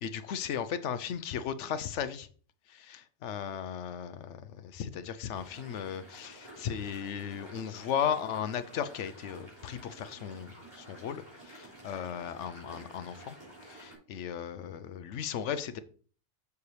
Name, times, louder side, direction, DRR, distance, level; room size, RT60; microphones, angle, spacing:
voice 1, 0.0-2.3 2.7-13.4 13.6-15.8, left 8 dB, 80° left, 13 dB, 1.0 m, -36 dB
sound 1, 5.3-13.9, right 1 dB, 40° right, 3.8 m, -51 dB
6.9 x 6.8 x 3.3 m, 0.42 s
omnidirectional pair, 1.2 m